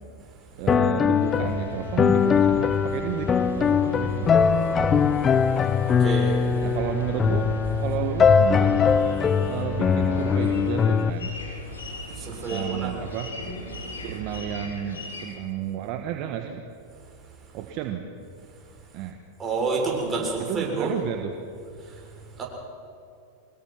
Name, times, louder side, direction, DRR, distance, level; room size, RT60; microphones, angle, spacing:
voice 1, 0.5-4.9 6.6-7.5 7.8-8.9 9.5-11.3 12.3-13.3 14.0-16.7 17.5-18.0 18.9-19.2 20.4-21.3, right 10 dB, 50° right, 5 dB, 1.5 m, -32 dB
sound 1, 0.7-11.1, left 6 dB, 25° left, 0.8 m, -21 dB
sound 2, 1.1-14.7, right 3 dB, 80° right, 3.0 m, -38 dB
voice 2, 5.9-6.3 12.1-12.9 19.4-20.9 21.8-22.0 22.4-22.5, right 4 dB, 25° right, -1 dB, 6.9 m, -28 dB
sound 3, 8.2-15.2, left 3 dB, 85° left, 6.1 m, -40 dB
24.5 x 21.0 x 6.0 m, 2.5 s
hypercardioid pair, 100°, 0 cm